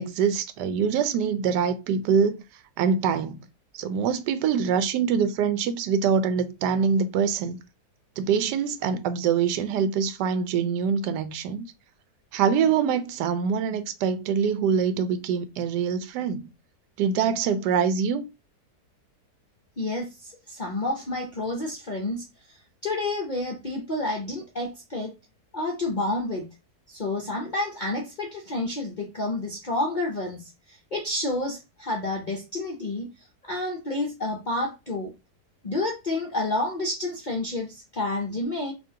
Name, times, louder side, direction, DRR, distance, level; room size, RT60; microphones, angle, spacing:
voice 1, 0.0-2.4 2.8-3.4 3.7-7.6 8.2-11.7 12.3-16.5 17.0-18.3, right 6 dB, 90° right, 1.2 m, -24 dB
voice 2, 19.8-22.6 22.8-25.1 25.5-26.5 26.9-33.1 33.4-35.1 35.6-38.7, left 2 dB, 60° left, 0.5 m, -29 dB
5.8 x 2.4 x 2.7 m
omnidirectional pair, 1.8 m